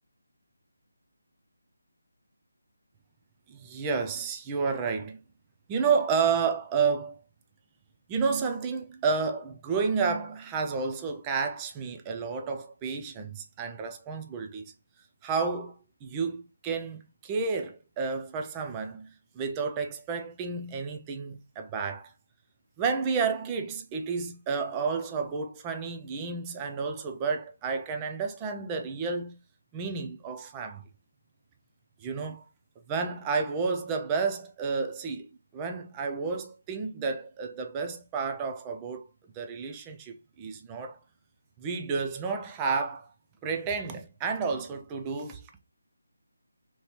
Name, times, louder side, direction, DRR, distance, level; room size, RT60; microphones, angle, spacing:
voice 1, 3.5-5.2 5.7-7.2 8.1-14.7 15.2-22.1 22.8-29.4 29.7-30.8 32.0-32.4 32.9-35.3 35.5-39.1 39.3-41.0 41.6-43.1 43.4-45.6, right 5 dB, 10° right, 0.3 m, -31 dB
3.0 x 2.9 x 4.3 m
figure-of-eight pair, 170°, 0 cm